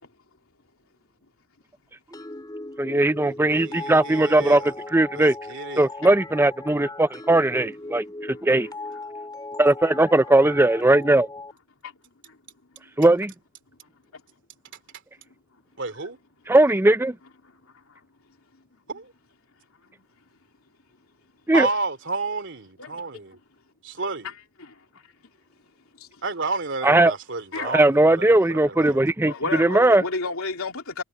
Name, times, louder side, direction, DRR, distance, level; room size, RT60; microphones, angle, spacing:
sound 1, 2.1-11.5, left 2 dB, 15° left, 4.5 m, -38 dB
voice 1, 2.9-5.3 5.8-8.7 9.6-11.3 13.0-13.3 16.5-17.1 21.5-21.7 26.8-27.1 27.6-30.0, right 2 dB, 10° right, 0.5 m, -19 dB
voice 2, 3.7-4.7 5.1-5.9 15.8-16.2 18.9-19.1 21.5-23.4 23.8-24.3 26.2-28.4 28.8-29.0, right 3 dB, 55° right, 3.1 m, -31 dB
voice 3, 29.3-31.0, left 3 dB, 70° left, 3.3 m, -31 dB
head